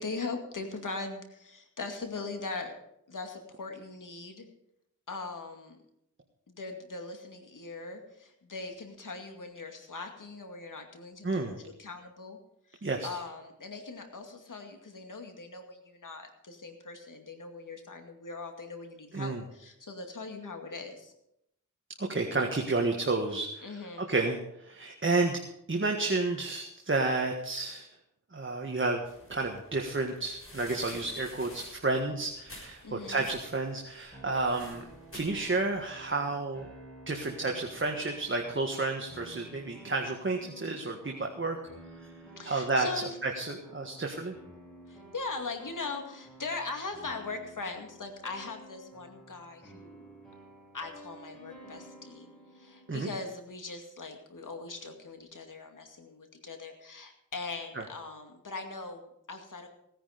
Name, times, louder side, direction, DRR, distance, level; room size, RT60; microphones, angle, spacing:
voice 1, 0.0-2.7 3.1-4.5 5.1-5.8 6.5-12.4 12.7-21.1 23.6-24.1 32.8-33.3 42.4-43.1 44.9-50.1 50.7-52.3 52.5-59.7, left 3 dB, 70° left, 4 dB, 2.3 m, -40 dB
voice 2, 11.2-11.5 12.8-13.2 19.1-19.4 22.0-23.7 24.1-25.4 25.7-27.9 28.3-29.0 29.3-34.8 35.1-36.7 37.1-41.6 42.0-42.1 42.4-42.9 43.2-44.3 52.9-53.1 57.7-57.8, right 3 dB, 40° right, 2 dB, 1.7 m, -31 dB
sound 1, 29.0-35.9, left 1 dB, 45° left, 6.5 m, -51 dB
sound 2, 34.1-53.4, right 1 dB, ahead, 7.1 m, -52 dB
17.0 x 10.0 x 5.2 m, 0.79 s
wide cardioid pair, 60°, 32 cm